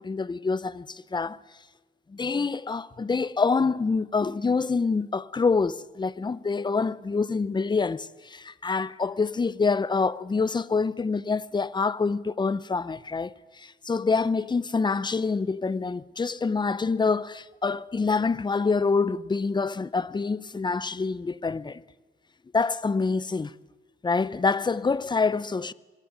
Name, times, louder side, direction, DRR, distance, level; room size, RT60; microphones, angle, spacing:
voice 1, 0.0-1.4 2.1-21.8 22.5-23.5 24.0-25.7, left 4 dB, 20° left, 0.8 m, -26 dB
23.0 x 20.5 x 9.2 m
cardioid pair, 90°, 20 cm